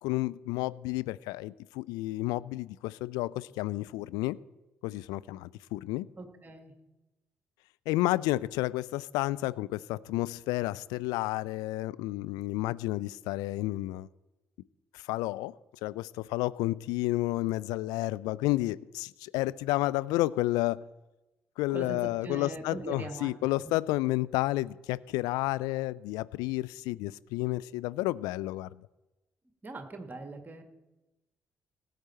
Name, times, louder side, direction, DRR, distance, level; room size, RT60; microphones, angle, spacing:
voice 1, 0.0-4.4 4.8-6.1 7.9-14.1 14.9-15.5 15.8-20.8 21.6-28.9, left 18 dB, 65° left, 0.3 m, -31 dB
voice 2, 6.2-6.7 21.7-23.3 23.6-23.7 29.6-30.6, right 2 dB, 25° right, 1.8 m, -41 dB
17.5 x 8.0 x 4.3 m
figure-of-eight pair, 45°, 7 cm